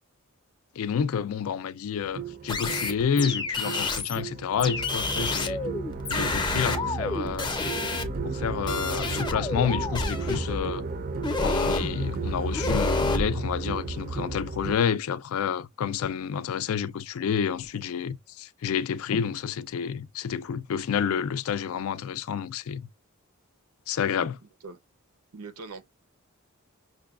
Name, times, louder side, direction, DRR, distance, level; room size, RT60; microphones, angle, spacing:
voice 1, 0.8-5.6 6.1-7.5 8.2-10.9 11.4-22.9 23.9-24.4, left 7 dB, 70° left, 0.4 m, -29 dB
sound 1, 2.0-14.7, right 4 dB, 40° right, 0.5 m, -33 dB
sound 2, 2.5-4.2 4.6-8.4 8.7-10.6 11.2-11.9 12.5-13.2, left 3 dB, 20° left, 0.6 m, -29 dB
voice 2, 25.3-25.9, right 4 dB, 80° right, 0.7 m, -41 dB
6.0 x 2.2 x 2.3 m
head